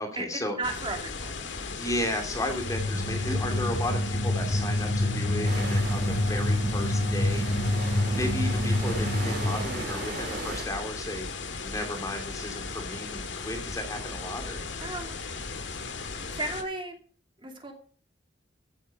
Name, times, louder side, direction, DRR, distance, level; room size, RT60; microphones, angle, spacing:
voice 1, 0.0-0.6 1.6-7.7 8.1-11.3 11.6-14.6, left 1 dB, 20° left, 4 dB, 2.7 m, -34 dB
sound 1, 0.6-16.6, left 4 dB, 80° left, 1.7 m, -37 dB
voice 2, 0.6-1.3 14.8-15.2 16.3-16.9 17.4-17.7, right 2 dB, 25° right, 3 dB, 2.5 m, -34 dB
sound 2, 2.6-10.0, left 1 dB, 50° left, 3.2 m, -27 dB
sound 3, 5.4-10.6, right 2 dB, 55° right, 4.2 m, -38 dB
15.5 x 9.1 x 4.8 m, 0.43 s
head